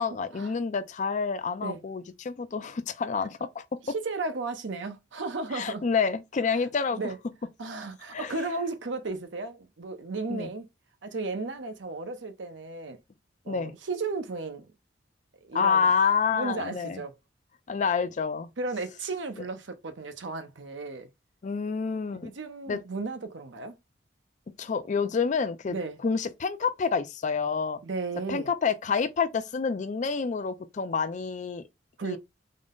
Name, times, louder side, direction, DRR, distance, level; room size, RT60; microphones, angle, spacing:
voice 1, 0.0-3.6 5.5-7.0 8.1-8.4 10.3-10.5 13.5-13.7 15.5-17.0 17.7-18.5 21.4-22.3 22.7-22.8 24.6-25.8 26.0-27.8 28.3-31.6 32.0-32.2, left 5 dB, 40° left, 0.4 m, -28 dB
voice 2, 3.8-5.8 7.0-7.2 7.6-10.7 11.0-13.0 13.5-14.7 15.4-15.9 16.3-17.1 18.6-21.1 22.1-23.7 25.7-26.0 27.8-28.5 32.0-32.2, right 3 dB, 75° right, 0.7 m, -34 dB
3.7 x 2.1 x 3.6 m
head